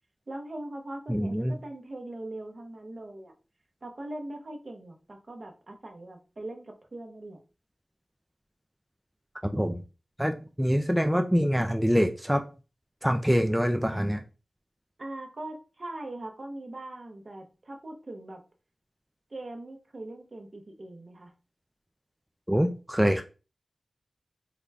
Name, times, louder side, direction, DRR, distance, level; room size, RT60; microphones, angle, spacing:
voice 1, 0.3-3.3 3.8-7.4 15.0-18.4 19.3-21.3, right 1 dB, 50° right, 3 dB, 0.8 m, -41 dB
voice 2, 1.1-1.6 9.5-9.8 10.2-12.4 13.0-14.2 22.5-23.2, equal, 5° right, 5 dB, 0.4 m, -25 dB
3.8 x 2.2 x 3.3 m, 0.33 s
wide cardioid pair, 55°, 0 cm